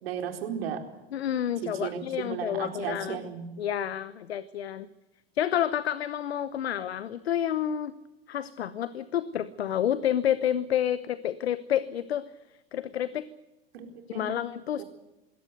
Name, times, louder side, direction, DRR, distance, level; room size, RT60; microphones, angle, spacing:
voice 1, 0.0-0.8 1.7-3.5 13.7-14.3 14.8-14.9, right 8 dB, 70° right, 5 dB, 4.2 m, -35 dB
voice 2, 1.1-3.2 3.6-4.9 5.3-7.9 8.3-12.3 12.7-13.3 14.1-14.8, left 10 dB, 85° left, 16 dB, 1.0 m, -29 dB
21.5 x 17.0 x 8.1 m, 1.0 s
hypercardioid pair, 90°, 31 cm